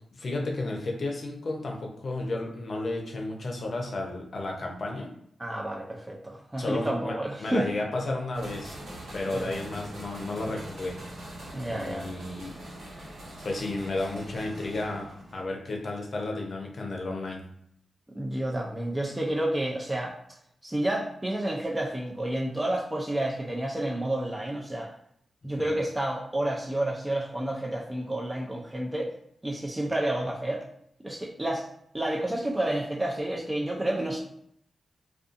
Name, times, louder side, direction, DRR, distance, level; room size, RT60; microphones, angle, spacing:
voice 1, 0.1-5.1 6.6-7.1 7.4-8.8 9.1-11.0 11.7-12.5 13.4-17.4 25.6-25.7, left 2 dB, 55° left, 1 dB, 0.6 m, -32 dB
voice 2, 5.4-7.6 9.3-9.5 11.5-12.1 18.2-20.1 20.6-24.9 25.4-29.1 29.4-30.6 31.0-31.7 31.9-34.2, right 1 dB, 15° right, -2 dB, 0.4 m, -30 dB
sound 1, 8.3-15.4, right 1 dB, 75° right, 1.3 m, -42 dB
2.5 x 2.3 x 2.5 m, 0.70 s
cardioid pair, 70°, 0 cm